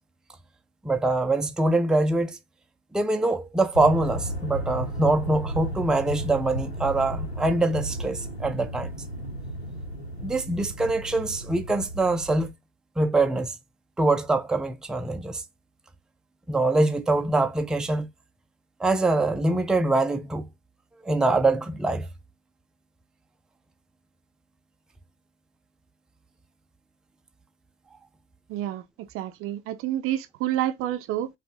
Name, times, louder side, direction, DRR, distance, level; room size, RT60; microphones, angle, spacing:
voice 1, 0.8-2.4 2.9-8.9 10.2-12.5 13.0-13.5 14.0-15.4 16.5-18.1 18.8-20.5 21.0-22.1, right 2 dB, ahead, 0.5 m, -24 dB
sound 1, 3.7-12.5, right 1 dB, 90° left, 1.0 m, -34 dB
voice 2, 28.5-28.8 29.1-31.3, right 12 dB, 45° right, 0.6 m, -28 dB
5.1 x 2.4 x 3.7 m
figure-of-eight pair, 60°, 31 cm